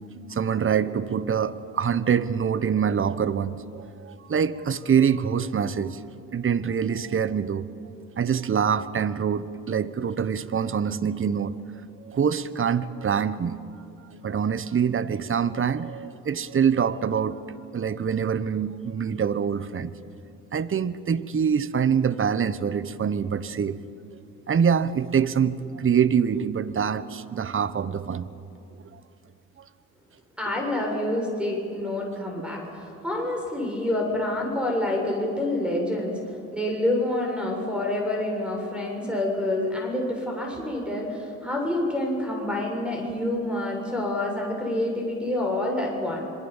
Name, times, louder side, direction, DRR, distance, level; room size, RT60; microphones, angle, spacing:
voice 1, 0.3-6.0 6.3-7.7 8.2-11.5 12.0-13.6 14.2-17.4 17.7-19.9 20.5-23.8 24.5-28.3 28.9-29.0 39.0-39.2, right 7 dB, 35° right, 16 dB, 1.2 m, -25 dB
voice 2, 30.4-46.2, left 1 dB, 5° right, 0 dB, 7.4 m, -27 dB
26.5 x 22.0 x 7.4 m, 2.6 s
hypercardioid pair, 60°, 37 cm